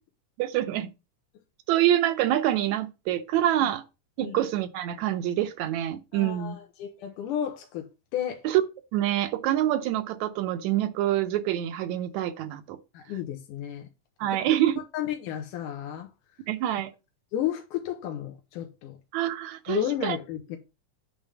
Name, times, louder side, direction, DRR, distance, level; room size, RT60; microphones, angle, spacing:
voice 1, 0.4-0.9 1.7-3.8 4.2-6.6 8.4-8.6 8.9-12.8 14.2-14.8 16.5-16.9 19.1-20.2, right 12 dB, 75° right, 1.9 m, -26 dB
voice 2, 6.1-7.9 8.1-8.4 12.9-13.9 14.3-14.4 14.9-16.1 17.3-19.0 19.7-20.6, left 11 dB, 90° left, 2.6 m, -32 dB
8.9 x 3.8 x 7.0 m
omnidirectional pair, 3.6 m